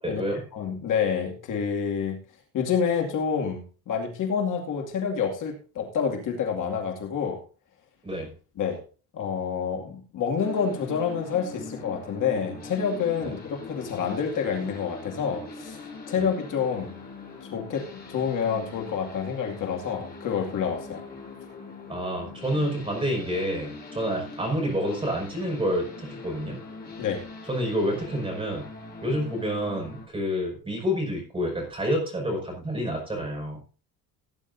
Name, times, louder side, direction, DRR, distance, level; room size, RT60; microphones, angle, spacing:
voice 1, 0.0-0.4 8.0-8.3 13.2-13.3 21.9-26.6 27.5-28.7 29.0-33.6, equal, 15° right, 0 dB, 5.7 m, -28 dB
voice 2, 0.5-2.2 2.5-7.4 8.6-8.8 9.1-17.0 17.5-21.0 27.0-27.2, left 6 dB, 55° left, 1 dB, 2.4 m, -28 dB
sound 1, 10.4-30.0, left 4 dB, 25° left, 3.7 m, -42 dB
17.5 x 10.0 x 2.7 m, 0.37 s
cardioid pair, 160°, 38 cm